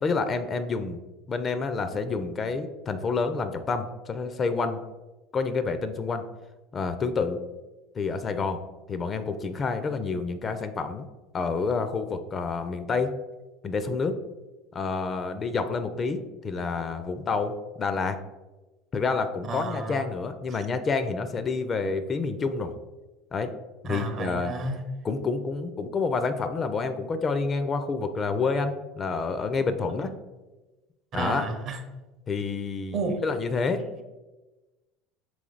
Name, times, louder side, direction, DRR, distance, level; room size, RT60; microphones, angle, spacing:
voice 1, 0.0-1.0 1.3-4.8 5.3-6.2 6.7-7.4 7.9-8.6 8.9-11.1 11.3-13.1 13.6-14.2 14.7-18.2 18.9-22.7 23.3-23.5 23.8-24.5 25.0-30.1 31.1-31.4 32.3-33.0 33.2-33.8, left 4 dB, 35° left, 9 dB, 0.4 m, -28 dB
voice 2, 19.5-20.1 23.8-24.8 31.1-31.8 32.9-33.2, right 3 dB, 45° right, 6 dB, 0.6 m, -31 dB
3.3 x 3.2 x 3.8 m, 1.1 s
supercardioid pair, 95°, 0 cm